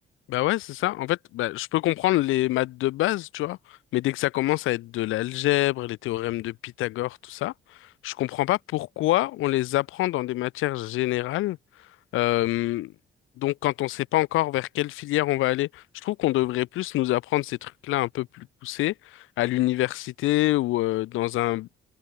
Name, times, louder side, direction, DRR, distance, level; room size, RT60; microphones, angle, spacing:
voice 1, 0.3-3.6 3.9-7.5 8.0-11.6 12.1-12.9 13.4-21.7, left 17 dB, 90° left, 1.1 m, -26 dB
cardioid pair, 90°, 20 cm